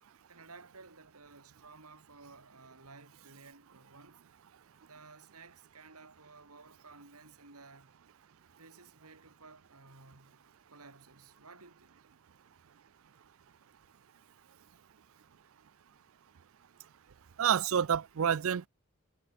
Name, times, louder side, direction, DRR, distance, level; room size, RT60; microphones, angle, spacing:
voice 1, 0.3-4.2 4.8-7.9 8.6-12.0, right 3 dB, 85° right, 4.1 m, -55 dB
voice 2, 17.4-18.7, right 8 dB, 65° right, 0.4 m, -28 dB
head